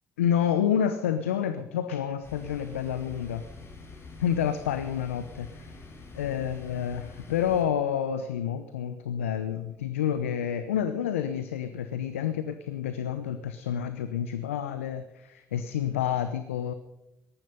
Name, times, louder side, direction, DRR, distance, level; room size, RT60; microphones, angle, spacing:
voice 1, 0.2-3.4 4.2-5.7 6.2-16.7, left 9 dB, 85° left, 11 dB, 0.8 m, -29 dB
sound 1, 2.2-7.6, left 3 dB, 40° left, 7.3 m, -46 dB
18.5 x 13.5 x 5.4 m, 0.90 s
hypercardioid pair, 45°, 7 cm